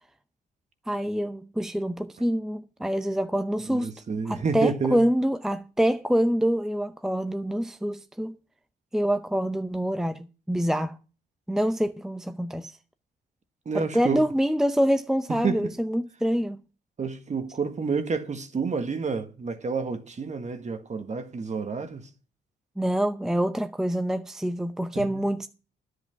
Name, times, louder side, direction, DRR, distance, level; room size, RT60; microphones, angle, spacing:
voice 1, 0.9-3.9 4.3-8.3 8.9-11.0 11.5-12.7 13.7-16.6 22.8-25.5, equal, ahead, 0.7 m, -26 dB
voice 2, 3.7-5.0 13.7-14.3 15.3-15.8 17.0-22.1 25.0-25.3, right 5 dB, 35° right, 1.6 m, -29 dB
10.5 x 8.2 x 5.9 m
cardioid pair, 90°, 20 cm